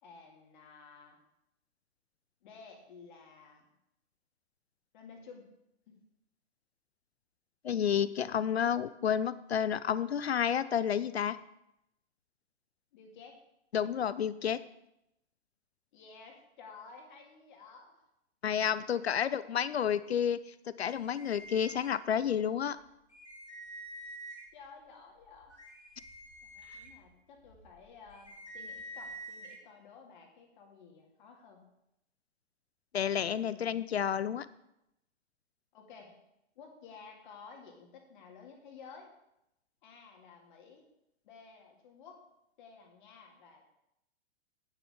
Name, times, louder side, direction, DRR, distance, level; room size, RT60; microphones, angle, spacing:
voice 1, 0.0-1.2 2.4-3.7 4.9-5.5 5.9-6.0 12.9-13.4 15.9-18.0 19.2-19.7 24.5-25.6 25.9-26.0 26.4-31.6 33.2-33.7 35.7-36.1 36.6-39.1 39.8-40.8 41.2-42.2 42.6-43.6, left 5 dB, 45° left, 2 dB, 2.2 m, -53 dB
voice 2, 7.6-11.4 13.7-14.6 18.4-20.4 20.8-22.8 32.9-34.5, left 8 dB, 70° left, 16 dB, 0.5 m, -30 dB
sound 1, 20.8-22.4 22.8-22.9 23.1-24.6 25.2-29.6, right 1 dB, 85° left, 2.3 m, -48 dB
10.5 x 9.3 x 3.6 m, 0.84 s
figure-of-eight pair, 110°, 33 cm